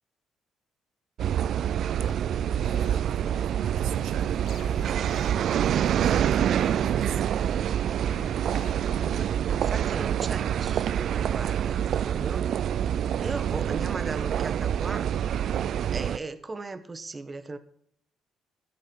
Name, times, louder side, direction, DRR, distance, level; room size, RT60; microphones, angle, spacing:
sound 1, 1.2-16.2, right 9 dB, 70° right, 0.3 m, -26 dB
sound 2, 2.0-9.2, left 8 dB, 65° left, 0.6 m, -47 dB
voice 1, 2.6-5.1 5.5-7.6, right 10 dB, 90° right, 0.8 m, -40 dB
voice 2, 9.1-12.5 13.2-15.1 15.9-17.6, right 3 dB, 30° right, 1.1 m, -37 dB
13.5 x 8.3 x 4.5 m
cardioid pair, 90°, 0 cm